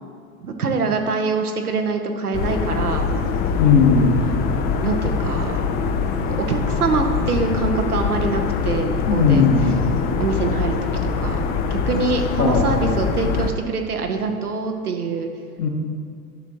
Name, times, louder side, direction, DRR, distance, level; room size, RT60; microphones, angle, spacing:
voice 1, 0.4-3.1 4.2-5.6 6.5-9.4 10.2-10.8 11.2-11.4 11.7-15.3, right 4 dB, 90° right, 4 dB, 0.8 m, -24 dB
sound 1, 2.3-13.5, left 5 dB, 25° left, 0.4 m, -23 dB
voice 2, 3.6-4.1 9.1-9.8 12.4-12.7 15.6-15.7, left 5 dB, 60° left, 0 dB, 1.4 m, -16 dB
10.5 x 6.1 x 2.9 m, 2.2 s
figure-of-eight pair, 85°, 44 cm